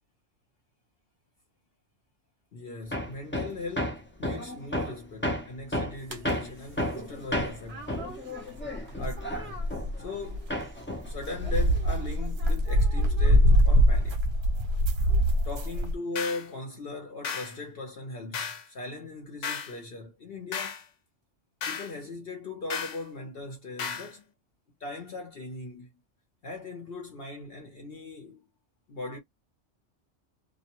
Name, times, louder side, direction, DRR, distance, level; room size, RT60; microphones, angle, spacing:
voice 1, 2.5-7.9 9.0-9.7 10.0-10.5 11.1-14.2 15.4-20.8 21.7-24.3 24.8-25.9 26.4-28.4 28.9-29.2, left 3 dB, 55° left, 1.0 m, -39 dB
Hammer, 2.9-10.2 10.5-12.3, left 1 dB, 15° left, 0.4 m, -33 dB
stan backyard banging, 6.1-6.3 7.7-10.6 11.1-15.9, equal, 60° right, 1.0 m, -24 dB
sound 1, 16.2-16.5 17.2-17.6 18.3-18.7 19.4-19.8 20.5-20.8 21.6-21.9 22.7-23.0 23.8-24.1, left 6 dB, 85° left, 1.1 m, -34 dB
2.5 x 2.1 x 2.8 m
omnidirectional pair, 1.2 m